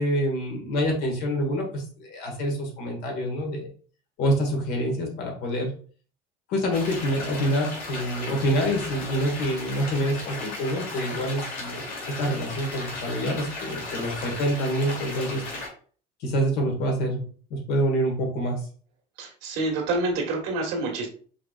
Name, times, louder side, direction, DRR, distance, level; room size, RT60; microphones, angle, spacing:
voice 1, 0.0-3.7 4.2-5.7 6.5-11.8 12.2-15.4 16.2-17.2 17.5-18.6, equal, 75° left, 1 dB, 1.6 m, -26 dB
sound 1, 6.7-15.7, left 2 dB, 55° left, 1.8 m, -35 dB
voice 2, 19.2-21.1, right 2 dB, 85° right, 1 dB, 1.5 m, -27 dB
5.0 x 3.1 x 2.4 m, 0.43 s
cardioid pair, 130°, 18 cm